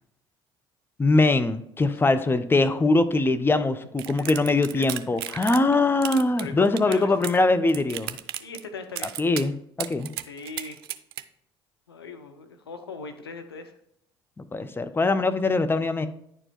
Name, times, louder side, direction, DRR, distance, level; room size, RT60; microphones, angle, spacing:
voice 1, 1.0-8.2 9.2-10.1 14.4-16.1, left 2 dB, 15° left, 11 dB, 0.7 m, -22 dB
voice 2, 1.9-2.3 4.0-4.3 4.7-5.1 6.1-7.1 8.4-9.1 10.3-10.8 11.9-13.7, left 4 dB, 90° left, 8 dB, 0.6 m, -40 dB
sound 1, 4.0-5.7 6.0-7.4 7.7-8.6 9.0-9.5 9.8-11.2, right 13 dB, 75° right, 0.4 m, -34 dB
10.0 x 4.5 x 4.3 m, 0.72 s
hypercardioid pair, 55°, 13 cm